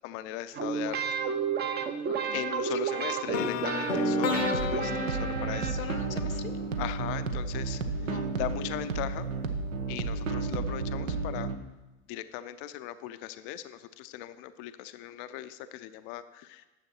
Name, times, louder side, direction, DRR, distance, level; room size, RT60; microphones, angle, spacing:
voice 1, 0.0-1.0 2.3-5.7 6.8-7.8 8.4-9.3 9.9-11.5 12.1-16.7, left 13 dB, 45° left, 12 dB, 0.5 m, -38 dB
sound 1, 0.5-6.2, right 6 dB, 25° right, 0.7 m, -31 dB
voice 2, 2.1-3.2 5.6-6.5 8.0-8.4, left 7 dB, 90° left, 9 dB, 0.6 m, -42 dB
sound 2, 3.3-7.3, left 6 dB, 70° left, 0.9 m, -33 dB
sound 3, 4.3-11.6, right 4 dB, 75° right, 0.8 m, -32 dB
9.7 x 7.2 x 4.3 m, 1.1 s
figure-of-eight pair, 75°, 39 cm